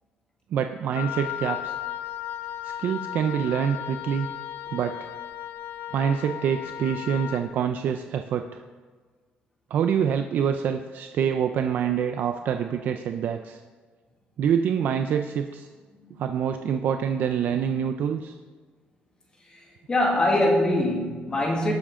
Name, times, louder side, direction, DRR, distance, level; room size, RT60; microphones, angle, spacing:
voice 1, 0.5-1.7 2.6-4.3 4.7-5.1 5.9-8.6 9.7-13.6 14.4-15.7 16.2-18.4, right 8 dB, 60° right, 6 dB, 0.5 m, -26 dB
Wind instrument woodwind instrument, 0.9-7.5, left 12 dB, 70° left, 0.6 m, -35 dB
voice 2, 19.4-21.7, left 1 dB, 25° left, -1 dB, 2.1 m, -24 dB
18.5 x 7.4 x 3.8 m, 1.4 s
cardioid pair, 145°, 4 cm